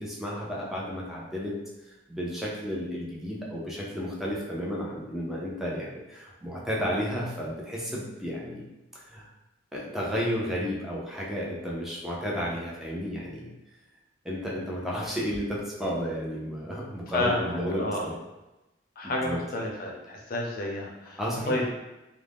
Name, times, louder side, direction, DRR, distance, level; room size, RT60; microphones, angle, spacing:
voice 1, 0.0-1.6 1.8-8.6 8.9-9.2 9.7-13.5 14.2-18.2 19.0-19.4 21.2-21.6, equal, ahead, -5 dB, 0.5 m, -32 dB
voice 2, 17.1-18.1 19.0-21.2 21.5-21.7, left 1 dB, 50° left, -1 dB, 0.5 m, -30 dB
2.4 x 2.0 x 3.3 m, 1.0 s
head